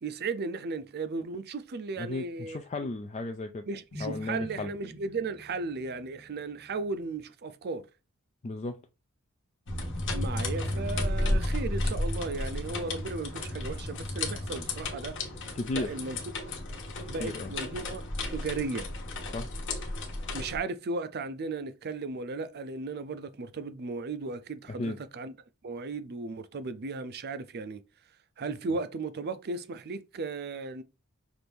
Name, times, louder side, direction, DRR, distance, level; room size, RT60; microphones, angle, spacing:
voice 1, 0.0-2.6 3.7-7.9 10.1-15.1 15.7-16.5 17.1-18.0 18.3-18.9 20.3-25.3 25.6-27.8 28.4-30.8, right 3 dB, 45° right, 0.5 m, -35 dB
voice 2, 2.0-3.6 4.0-4.7 8.4-8.8 15.6-16.0 17.2-17.5 19.3-19.5 24.8-25.0, left 2 dB, 30° left, 0.4 m, -34 dB
sound 1, 3.9-7.2, left 1 dB, 80° left, 1.3 m, -47 dB
sound 2, 9.7-20.6, left 1 dB, 55° left, 1.2 m, -33 dB
6.0 x 2.6 x 3.4 m
head